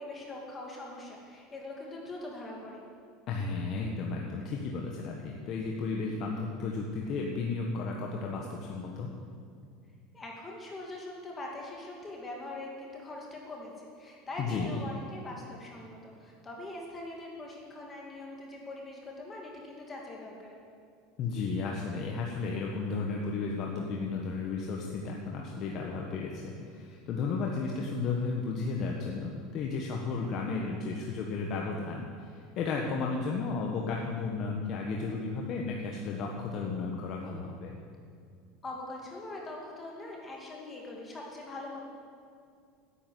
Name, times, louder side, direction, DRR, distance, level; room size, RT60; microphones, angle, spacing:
voice 1, 0.0-2.8 10.1-20.6 38.6-41.8, left 2 dB, 20° left, -2 dB, 2.4 m, -42 dB
voice 2, 3.3-9.1 14.4-14.8 21.2-37.7, left 4 dB, 45° left, -1 dB, 1.4 m, -33 dB
9.9 x 8.7 x 9.3 m, 2.3 s
supercardioid pair, 125°, 0 cm